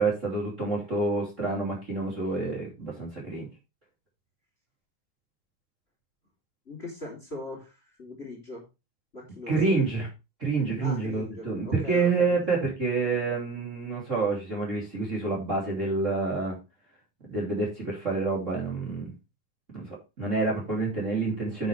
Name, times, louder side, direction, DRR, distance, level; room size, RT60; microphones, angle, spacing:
voice 1, 0.0-3.5 9.5-10.1 10.4-16.6 17.3-19.1 19.7-21.7, right 3 dB, 25° right, -3 dB, 2.9 m, -28 dB
voice 2, 6.7-7.7 8.0-8.6 9.1-9.7 10.8-12.1, left 1 dB, 20° left, -1 dB, 3.3 m, -40 dB
10.0 x 7.3 x 3.3 m, 0.27 s
omnidirectional pair, 3.6 m